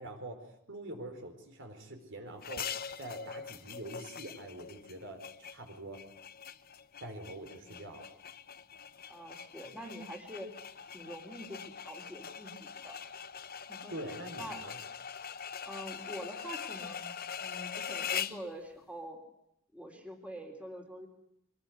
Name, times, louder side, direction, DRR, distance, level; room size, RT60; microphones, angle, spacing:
voice 1, 0.0-6.0 7.0-8.1 13.9-14.8, right 1 dB, 60° right, 5 dB, 4.6 m, -45 dB
sound 1, 2.4-18.5, left 7 dB, 45° left, 1.0 m, -42 dB
voice 2, 7.6-7.9 9.1-10.5 10.9-13.1 13.7-14.9 15.6-17.1 17.4-19.2 19.7-21.1, equal, 5° right, 2 dB, 3.7 m, -46 dB
24.5 x 20.5 x 9.5 m, 0.78 s
head